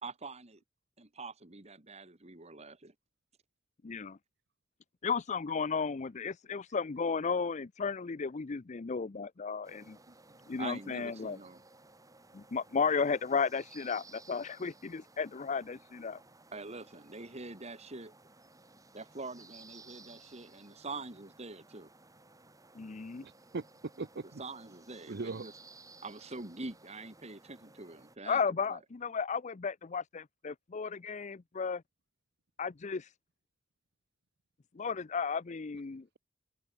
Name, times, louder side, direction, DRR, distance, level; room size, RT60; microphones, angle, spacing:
voice 1, 0.0-0.6 1.0-2.9 10.1-11.6 16.5-18.1 18.9-21.9 24.4-25.5 26.0-28.4 28.7-28.8, right 3 dB, 35° right, 2.3 m, -45 dB
voice 2, 3.8-4.2 5.0-10.0 10.5-11.4 12.3-16.2 22.7-23.2 28.3-31.8 32.6-33.1 34.8-36.2, left 5 dB, 35° left, 0.5 m, -34 dB
sound 1, 9.6-28.2, right 3 dB, 20° right, 5.8 m, -58 dB
voice 3, 23.2-24.4 25.1-25.5, right 3 dB, 55° right, 0.7 m, -40 dB
head